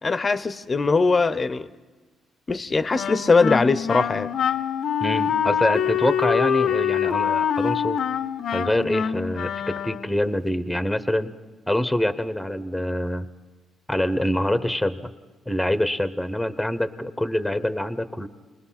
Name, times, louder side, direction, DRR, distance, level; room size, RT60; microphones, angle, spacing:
voice 1, 0.0-1.7 2.5-4.3, left 4 dB, 30° left, 0.7 m, -21 dB
Wind instrument woodwind instrument, 2.9-10.2, left 8 dB, 65° left, 0.7 m, -25 dB
voice 2, 5.0-8.0 8.5-11.3 11.7-13.3 13.9-15.0 15.5-18.3, left 1 dB, 5° left, 0.9 m, -25 dB
28.5 x 20.0 x 5.8 m
cardioid pair, 90°, 0 cm